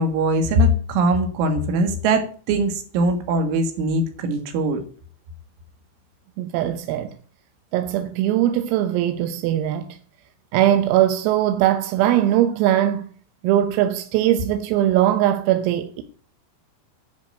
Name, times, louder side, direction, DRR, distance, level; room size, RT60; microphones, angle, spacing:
voice 1, 0.0-4.8, right 1 dB, 70° right, 4.2 m, -21 dB
voice 2, 6.4-7.1 7.7-10.0 10.5-13.1 13.4-16.0, right 12 dB, 90° right, 3.6 m, -20 dB
10.5 x 6.9 x 8.9 m
omnidirectional pair, 5.9 m